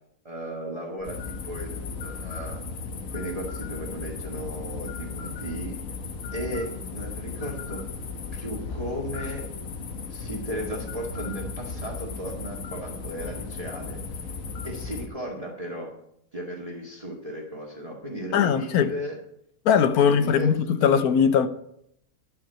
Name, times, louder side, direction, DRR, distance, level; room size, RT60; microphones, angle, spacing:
voice 1, 0.2-1.2 1.4-2.6 3.1-5.8 6.3-7.8 8.3-9.5 10.1-14.3 14.6-15.9 16.3-19.2 19.9-21.0, right 1 dB, 25° right, 2.0 m, -35 dB
sound 1, 1.0-15.1, left 4 dB, 65° left, 1.4 m, -36 dB
voice 2, 18.3-18.9 19.6-21.5, left 7 dB, 80° left, 1.3 m, -20 dB
11.5 x 5.9 x 8.2 m
omnidirectional pair, 1.6 m